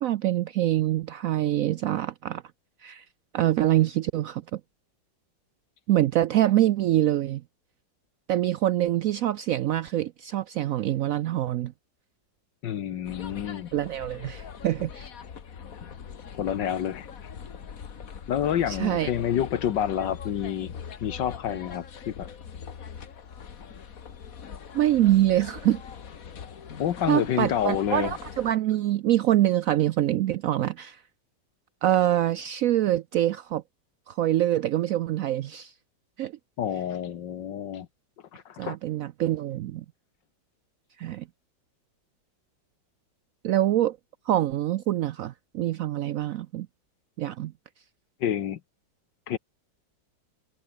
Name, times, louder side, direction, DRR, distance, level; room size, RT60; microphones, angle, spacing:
voice 1, 0.0-2.4 2.8-3.1 3.3-4.6 5.9-7.4 8.3-11.7 13.7-15.1 18.7-19.1 24.7-25.8 27.1-31.0 31.8-33.6 34.1-35.7 36.2-36.3 38.6-39.8 41.0-41.3 43.4-44.0 44.3-46.7 47.2-47.5, right 13 dB, 85° right, 0.7 m, -25 dB
voice 2, 12.6-13.7 16.3-17.1 18.3-20.7 21.0-22.3 26.8-28.1 36.6-37.9 38.3-38.8 48.2-48.6 49.3-49.4, left 10 dB, 75° left, 1.7 m, -28 dB
sound 1, 13.0-28.5, left 7 dB, 50° left, 1.8 m, -42 dB
omnidirectional pair, 2.0 m